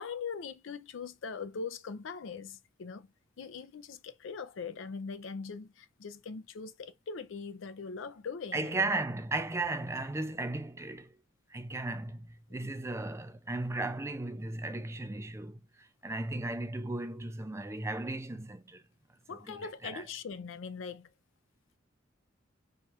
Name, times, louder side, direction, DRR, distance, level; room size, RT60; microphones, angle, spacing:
voice 1, 0.0-3.1 3.4-8.9 12.6-12.7 19.3-21.1, left 5 dB, 70° left, 0.4 m, -41 dB
voice 2, 8.5-11.1 11.5-18.8 19.3-19.6 19.8-20.0, right 2 dB, 15° right, 0.4 m, -36 dB
4.5 x 2.4 x 4.2 m
head